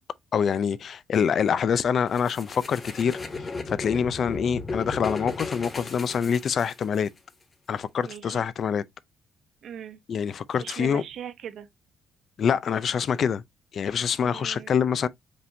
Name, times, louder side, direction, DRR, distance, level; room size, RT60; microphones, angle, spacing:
voice 1, 0.3-7.1 7.7-8.8 10.1-11.0 12.4-13.4 13.7-15.1, left 7 dB, 50° left, 0.4 m, -25 dB
sound 1, 2.1-7.1, left 3 dB, 25° left, 0.9 m, -35 dB
voice 2, 8.0-8.5 9.6-10.0 10.6-11.7 14.2-14.7, right 9 dB, 60° right, 0.9 m, -39 dB
5.1 x 3.5 x 2.6 m
cardioid pair, 125°, 0 cm